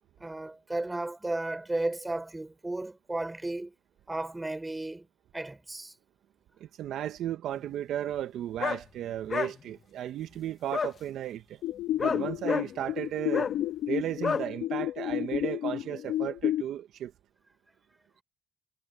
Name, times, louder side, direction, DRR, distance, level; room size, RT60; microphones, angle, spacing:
voice 1, 0.2-3.7 4.1-5.1 5.3-5.9, right 2 dB, 10° right, 4.5 m, -34 dB
voice 2, 6.6-11.6 12.0-13.5 13.9-17.1, right 11 dB, 65° right, 1.1 m, -34 dB
sound 1, 8.6-8.8 9.3-9.5 10.7-10.9 12.0-12.7 13.3-13.5 14.2-14.4, left 5 dB, 35° left, 0.8 m, -29 dB
sound 2, 11.6-16.6, left 12 dB, 65° left, 1.4 m, -31 dB
cardioid pair, 95°, 0 cm